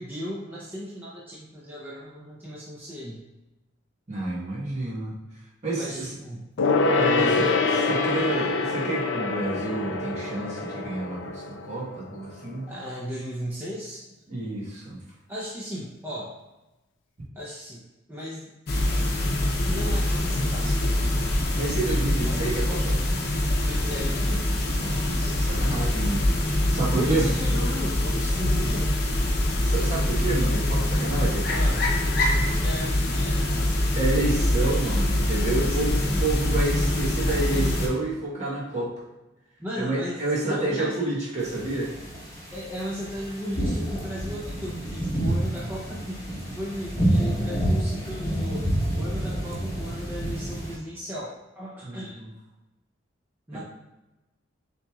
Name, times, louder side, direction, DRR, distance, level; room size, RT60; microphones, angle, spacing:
voice 1, 0.0-3.2 5.7-6.5 7.1-8.0 12.7-14.1 15.3-16.4 17.3-17.8 18.1-18.5 19.7-20.8 22.1-22.6 23.6-24.6 26.9-28.9 31.5-33.7 35.4-36.2 37.3-37.7 39.6-40.2 40.5-41.0 42.5-46.2 46.6-52.2 53.5-53.6, equal, 10° right, -7 dB, 0.6 m, -36 dB
voice 2, 4.1-5.1 5.6-6.1 6.9-7.5 7.9-12.7 14.3-15.0 21.5-23.0 24.7-26.4 26.7-27.3 29.6-31.5 33.9-38.9 39.7-41.9 51.8-52.3 53.5-53.6, right 2 dB, 40° right, -5 dB, 1.1 m, -29 dB
Gong, 6.6-12.5 12.7-12.8, left 3 dB, 80° left, 0.4 m, -25 dB
sound 1, 18.7-37.9, left 1 dB, 55° left, 0.8 m, -24 dB
sound 2, 41.4-50.7, right 1 dB, 20° left, 1.1 m, -28 dB
6.5 x 3.0 x 2.3 m, 1.0 s
head